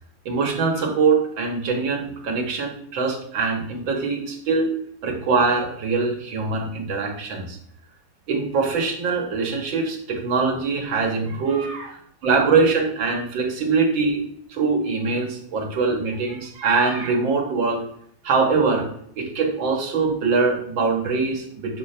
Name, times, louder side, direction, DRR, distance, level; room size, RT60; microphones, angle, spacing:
voice 1, 0.3-4.7 5.0-7.6 8.3-14.2 14.5-17.8 18.2-18.9 19.2-21.8, right 4 dB, 90° right, 1 dB, 2.2 m, -23 dB
8.7 x 3.3 x 5.8 m, 0.67 s
omnidirectional pair, 2.0 m